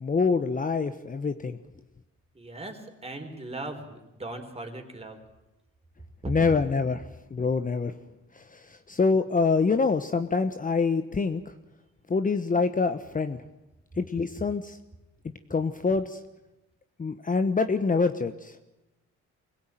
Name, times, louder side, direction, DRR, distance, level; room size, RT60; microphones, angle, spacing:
voice 1, 0.0-1.6 6.3-7.9 8.4-11.4 12.1-13.4 14.0-14.8 15.5-16.2 17.0-18.6, left 4 dB, 25° left, 9 dB, 1.1 m, -26 dB
voice 2, 2.3-5.2 6.2-6.3, right 2 dB, 20° right, 4 dB, 4.3 m, -38 dB
24.5 x 17.0 x 9.1 m, 0.99 s
cardioid pair, 90°, 30 cm